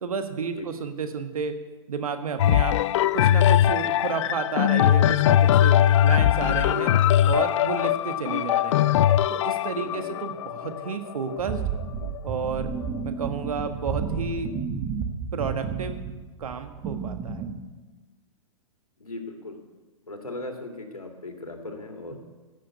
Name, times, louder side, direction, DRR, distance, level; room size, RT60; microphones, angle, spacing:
voice 1, 0.0-1.5 1.9-2.7 3.1-5.7 6.0-6.9 7.2-9.0 9.3-11.6 12.2-12.7 13.0-14.5 15.3-16.0 16.4-17.5, right 5 dB, 75° right, 7 dB, 1.5 m, -31 dB
sound 1, 2.4-12.2 12.8-12.9, left 11 dB, 55° left, 0.4 m, -21 dB
voice 2, 9.7-10.1 19.0-19.6 20.0-22.2, left 2 dB, 90° left, 3 dB, 2.3 m, -38 dB
sound 2, 11.4-17.5, right 6 dB, 25° right, 1.5 m, -32 dB
14.5 x 6.5 x 8.1 m, 1.2 s
hypercardioid pair, 115°, 18 cm